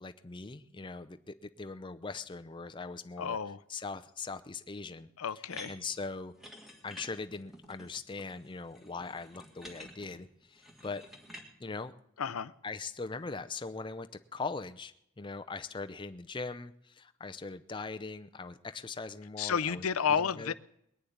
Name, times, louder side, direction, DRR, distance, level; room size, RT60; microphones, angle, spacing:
voice 1, 0.0-3.4 3.7-5.1 5.7-6.3 6.8-11.1 11.6-11.9 12.6-19.8 20.2-20.5, left 4 dB, 20° left, 0.6 m, -41 dB
voice 2, 3.2-3.6 5.2-5.7 12.2-12.5 19.4-20.5, left 7 dB, 80° left, 0.6 m, -31 dB
sound 1, 5.5-11.5, left 1 dB, ahead, 2.1 m, -50 dB
20.5 x 6.9 x 9.5 m
head